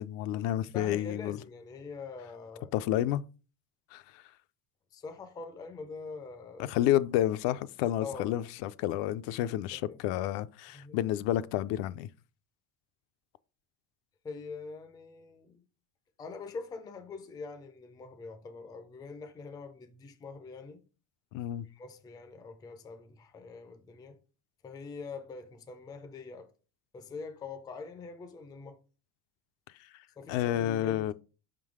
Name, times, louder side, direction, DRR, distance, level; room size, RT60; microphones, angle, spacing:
voice 1, 0.0-1.4 2.7-3.2 3.9-4.2 6.6-12.1 21.3-21.7 30.3-31.1, left 12 dB, 75° left, 0.5 m, -30 dB
voice 2, 0.7-2.7 4.9-6.7 8.0-8.4 9.7-10.0 10.7-11.0 14.2-15.6 16.2-20.8 21.6-24.2 24.6-26.5 26.9-28.8 30.2-31.1, left 4 dB, 10° left, 0.3 m, -44 dB
5.4 x 3.8 x 4.8 m
cardioid pair, 160°, 44 cm